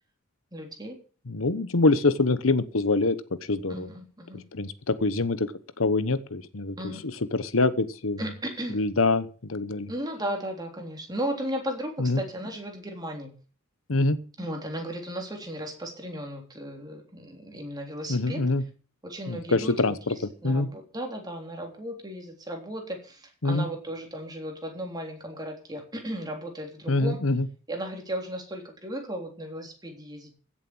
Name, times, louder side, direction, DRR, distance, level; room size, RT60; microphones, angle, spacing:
voice 1, 0.5-1.0 3.7-4.4 6.8-7.0 8.2-8.8 9.9-13.3 14.4-18.4 19.0-27.2 27.7-30.3, equal, 20° right, 2 dB, 3.6 m, -35 dB
voice 2, 1.3-3.2 3.5-3.9 4.5-5.5 5.8-6.9 7.3-8.3 8.7-9.9 12.0-12.2 13.9-14.2 18.1-18.6 19.3-20.1 20.4-20.7 23.4-23.7 26.9-27.5, left 3 dB, 90° left, 14 dB, 1.1 m, -25 dB
16.0 x 7.6 x 6.2 m, 0.40 s
head